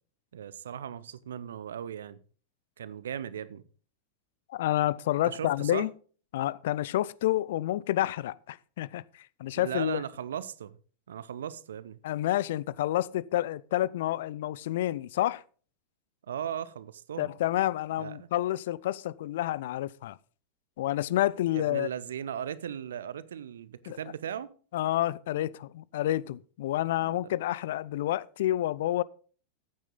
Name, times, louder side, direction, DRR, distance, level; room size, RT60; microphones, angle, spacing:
voice 1, 0.3-2.2 2.8-3.6 5.2-5.9 9.6-10.8 11.1-12.0 16.3-17.3 18.0-18.3 21.5-24.5 27.0-27.3, right 9 dB, 65° right, 0.8 m, -37 dB
voice 2, 4.5-5.9 6.3-9.0 9.4-10.0 12.0-15.4 17.2-20.2 20.8-21.9 23.9-24.0 24.7-29.0, left 14 dB, 55° left, 0.4 m, -29 dB
14.0 x 9.1 x 3.8 m
figure-of-eight pair, 90°, 0 cm